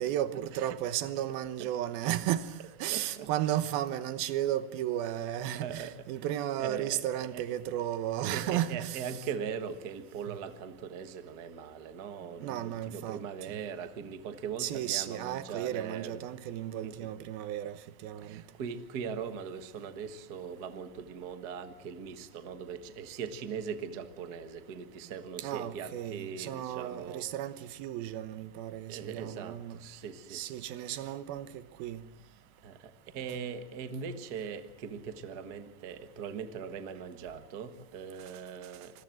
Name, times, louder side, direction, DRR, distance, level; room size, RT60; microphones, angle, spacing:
voice 1, 0.0-9.3 10.3-10.4 12.4-13.2 13.5-13.6 14.6-18.4 25.4-29.8 30.3-31.5 31.8-32.0, right 12 dB, 90° right, 2.9 m, -34 dB
voice 2, 2.9-3.3 5.4-6.1 6.6-7.4 8.3-16.2 16.8-17.0 18.2-27.3 28.9-31.1 32.6-32.8 33.1-39.0, right 6 dB, 60° right, 1.0 m, -40 dB
26.5 x 22.0 x 7.7 m
omnidirectional pair, 4.2 m